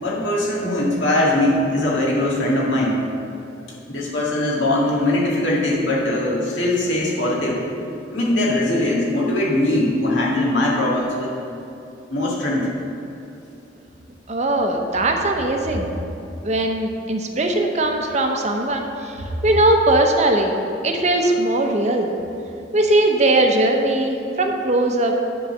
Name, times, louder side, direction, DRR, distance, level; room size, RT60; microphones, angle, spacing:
voice 1, 0.0-3.0 3.9-7.6 8.1-11.3 12.1-12.7, left 1 dB, 85° left, -5 dB, 1.9 m, -21 dB
voice 2, 14.3-15.9 16.4-19.2 19.4-20.6 20.8-22.1 22.7-25.1, right 1 dB, 40° right, 3 dB, 0.7 m, -19 dB
10.0 x 3.9 x 6.5 m, 2.8 s
head